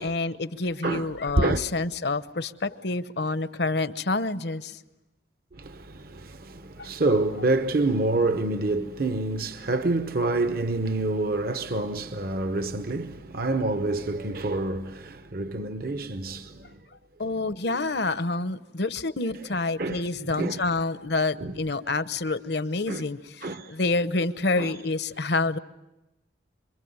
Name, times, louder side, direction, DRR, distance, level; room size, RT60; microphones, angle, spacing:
voice 1, 0.0-4.8 6.8-6.9 17.2-25.6, left 3 dB, 60° left, 0.9 m, -28 dB
voice 2, 5.5-16.8 19.8-20.0 20.4-20.6 21.4-21.6 22.9-23.0 23.4-23.7 24.6-24.7, right 2 dB, 50° right, 0.9 m, -27 dB
27.0 x 23.0 x 9.5 m
head